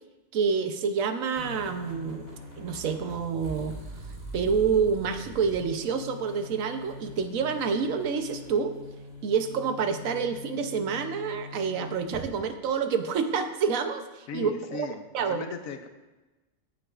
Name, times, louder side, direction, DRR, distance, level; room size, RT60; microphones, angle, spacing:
voice 1, 0.3-2.3 2.6-3.8 4.3-8.7 9.2-14.9 15.1-15.4, right 6 dB, 80° right, 8 dB, 1.1 m, -28 dB
sound 1, 1.4-12.3, left 1 dB, 30° right, 1.8 m, -43 dB
voice 2, 14.3-15.9, left 5 dB, 80° left, 7 dB, 1.1 m, -37 dB
15.5 x 6.0 x 2.4 m, 1.1 s
omnidirectional pair, 1.4 m